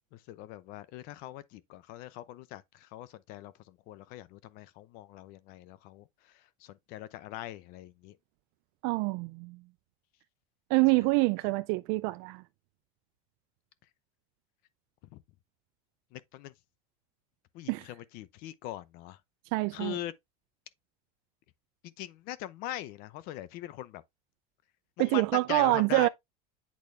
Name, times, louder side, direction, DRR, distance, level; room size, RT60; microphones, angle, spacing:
voice 1, 0.1-8.2 10.9-11.1 15.1-15.2 16.1-16.5 17.5-19.2 19.7-20.1 21.8-24.0 25.0-26.1, left 14 dB, 50° left, 0.7 m, -42 dB
voice 2, 8.8-9.6 10.7-12.4 17.7-17.8 19.5-20.0 25.0-26.1, right 22 dB, 55° right, 0.4 m, -26 dB
8.6 x 4.0 x 3.4 m
supercardioid pair, 145°, 19 cm